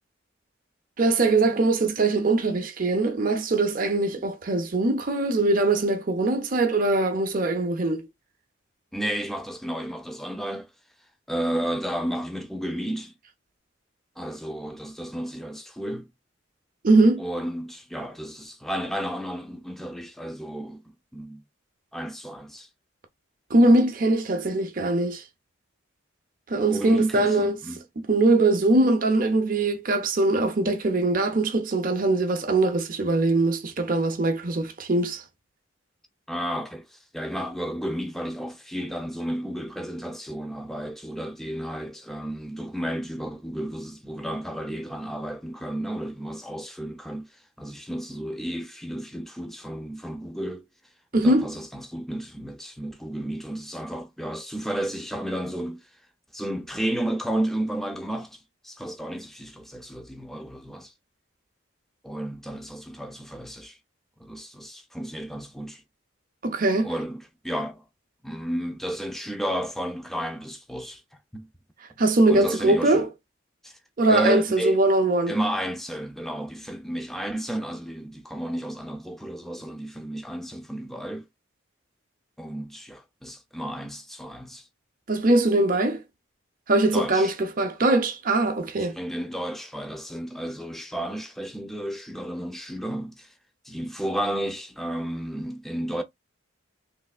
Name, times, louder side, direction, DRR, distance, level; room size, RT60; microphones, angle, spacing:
voice 1, 1.0-8.1 16.8-17.2 23.5-25.2 26.5-27.6 28.1-35.2 51.1-51.5 66.4-66.9 72.0-73.1 74.0-75.4 85.1-86.0 86.7-89.0, right 2 dB, 45° right, 0.7 m, -22 dB
voice 2, 8.9-10.7 11.3-13.1 14.2-16.1 17.2-21.4 21.9-22.7 26.7-27.8 36.3-47.3 47.6-50.7 51.1-55.9 56.3-60.9 62.0-63.8 64.2-65.8 66.8-67.8 68.2-71.0 71.3-71.5 72.3-73.1 73.6-73.7 74.1-74.8 75.3-81.3 82.4-84.7 86.9-87.3 88.8-93.3 93.6-96.0, right 1 dB, ahead, 0.5 m, -32 dB
3.3 x 3.3 x 2.4 m
head